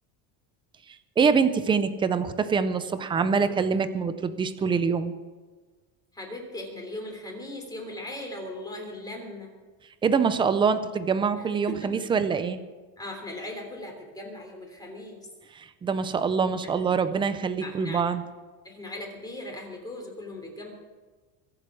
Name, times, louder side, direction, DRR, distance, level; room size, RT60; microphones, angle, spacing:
voice 1, 1.2-5.1 10.0-12.6 15.5-18.2, right 5 dB, 10° right, 11 dB, 0.4 m, -25 dB
voice 2, 6.1-9.5 11.7-11.9 13.0-15.2 17.6-18.0 18.6-20.7, left 1 dB, 10° left, 1 dB, 3.2 m, -38 dB
23.0 x 7.9 x 6.2 m, 1.3 s
cardioid pair, 165°, 45 cm